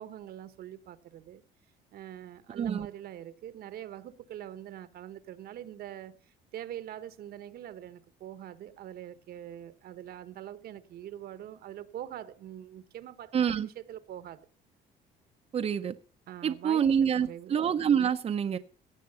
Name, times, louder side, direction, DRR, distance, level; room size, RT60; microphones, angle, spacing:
voice 1, 0.0-1.4 1.9-14.5 16.3-17.5, right 11 dB, 65° right, 1.1 m, -44 dB
voice 2, 2.5-2.9 13.3-13.7 15.5-15.9 16.4-18.6, right 8 dB, 35° right, 0.7 m, -27 dB
17.5 x 6.6 x 6.8 m
cardioid pair, 110°, 17 cm